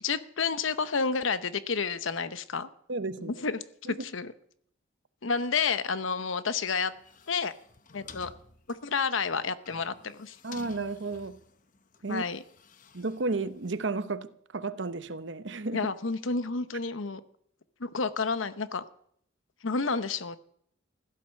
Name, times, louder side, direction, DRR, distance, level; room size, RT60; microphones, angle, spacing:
voice 1, 0.0-2.7 3.2-4.3 5.2-6.9 7.3-7.5 7.9-8.3 8.7-10.4 12.1-12.4 15.7-17.2 17.8-18.9 19.6-20.4, left 5 dB, 80° left, 0.9 m, -30 dB
voice 2, 2.9-3.4 3.8-4.0 10.4-11.4 12.0-12.2 12.9-15.9, right 3 dB, 65° right, 0.9 m, -33 dB
sound 1, 6.9-13.9, left 4 dB, 40° left, 0.9 m, -52 dB
16.0 x 12.5 x 6.5 m
head